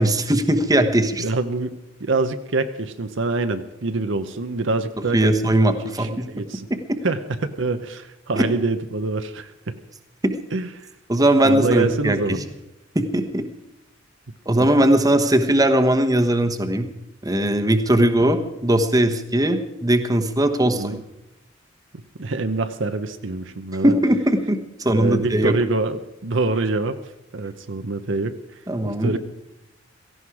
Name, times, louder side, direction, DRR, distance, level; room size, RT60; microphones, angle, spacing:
voice 1, 0.0-1.3 5.1-6.4 6.7-7.0 8.4-8.5 10.2-10.3 11.1-12.4 12.9-13.5 14.5-16.9 17.2-21.0 23.8-25.5 28.7-29.2, right 1 dB, 20° right, 6 dB, 1.1 m, -19 dB
voice 2, 1.2-1.7 2.0-5.4 6.0-6.7 7.0-9.8 10.5-10.9 11.4-12.4 14.6-14.7 20.7-21.0 22.2-23.9 24.9-27.0 27.3-28.4 28.8-29.2, right 3 dB, 65° right, 8 dB, 0.8 m, -25 dB
17.0 x 15.0 x 4.9 m, 0.91 s
head